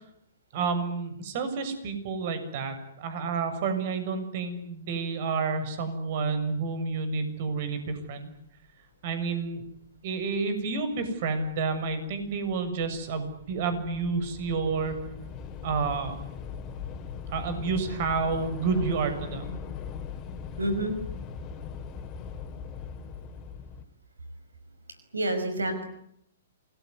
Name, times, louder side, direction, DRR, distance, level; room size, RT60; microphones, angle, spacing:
voice 1, 0.5-8.3 9.0-9.6 10.0-15.0 15.6-16.2 17.3-19.6, right 4 dB, 50° right, 10 dB, 7.0 m, -30 dB
Train / Subway metro underground, 9.8-9.9 10.8-11.0 11.3-23.8, left 6 dB, 25° left, 3.7 m, -40 dB
voice 2, 20.6-20.9 25.1-25.9, right 1 dB, 90° right, 9 dB, 5.5 m, -28 dB
28.0 x 21.0 x 9.7 m, 0.75 s
hypercardioid pair, 125°, 0 cm